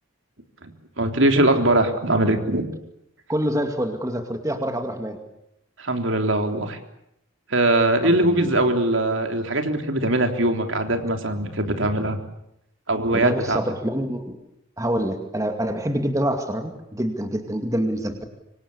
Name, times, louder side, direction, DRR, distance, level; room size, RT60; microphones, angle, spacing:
voice 1, 1.0-2.7 5.8-6.8 7.5-12.2 12.9-13.6, right 1 dB, 60° right, 5 dB, 3.4 m, -21 dB
voice 2, 3.3-5.2 8.0-8.5 13.1-14.4 14.8-18.2, equal, 15° right, 5 dB, 2.3 m, -26 dB
26.0 x 25.5 x 8.6 m, 0.80 s
head